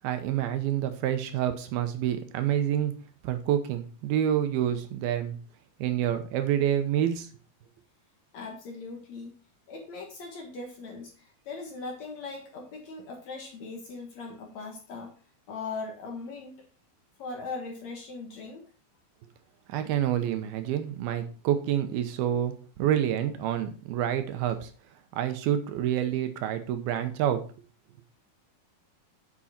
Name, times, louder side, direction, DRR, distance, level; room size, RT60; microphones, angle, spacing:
voice 1, 0.0-2.9 3.2-5.4 5.8-7.3 19.7-24.7 25.2-27.4, right 10 dB, 80° right, 8 dB, 2.7 m, -28 dB
voice 2, 8.3-9.3 9.7-15.1 15.5-16.6 17.2-18.7, left 3 dB, 55° left, 2 dB, 2.3 m, -39 dB
7.6 x 7.1 x 4.2 m, 0.36 s
omnidirectional pair, 4.5 m